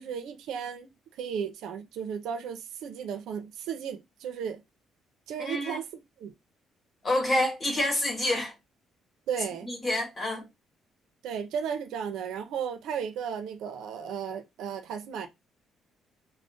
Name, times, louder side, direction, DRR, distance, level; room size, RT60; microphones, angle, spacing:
voice 1, 0.0-4.6 5.3-5.9 6.2-6.3 9.3-9.7 11.2-15.3, right 7 dB, 80° right, 0.6 m, -35 dB
voice 2, 5.4-5.8 7.0-8.5 9.7-10.4, left 1 dB, 25° left, 1.1 m, -27 dB
4.7 x 2.1 x 2.6 m
cardioid pair, 160°, 0 cm